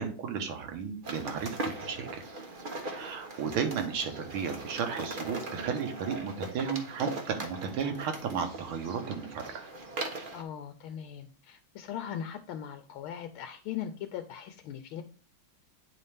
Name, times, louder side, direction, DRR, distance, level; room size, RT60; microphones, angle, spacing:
voice 1, 0.0-2.2 2.8-9.5, right 6 dB, 85° right, 6 dB, 2.0 m, -34 dB
sound 1, 1.0-10.4, right 2 dB, 55° right, 0.5 m, -40 dB
voice 2, 10.3-15.0, left 9 dB, 85° left, 7 dB, 1.4 m, -39 dB
9.1 x 4.1 x 3.4 m, 0.40 s
omnidirectional pair, 2.3 m